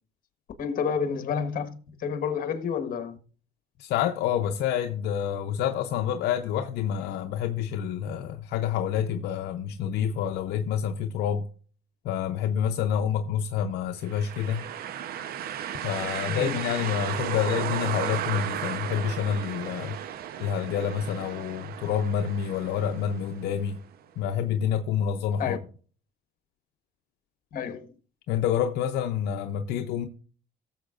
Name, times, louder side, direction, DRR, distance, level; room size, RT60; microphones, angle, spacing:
voice 1, 0.6-1.7 2.0-3.2 16.3-16.6 25.4-25.6 27.5-28.0, left 6 dB, 55° left, 1.4 m, -29 dB
voice 2, 3.8-11.5 12.0-14.6 15.8-20.0 20.4-23.8 24.2-25.6 28.3-30.1, left 9 dB, 75° left, 0.7 m, -28 dB
sound 1, 14.1-23.9, right 10 dB, 65° right, 0.8 m, -34 dB
18.0 x 7.3 x 2.5 m
cardioid pair, 110°, 17 cm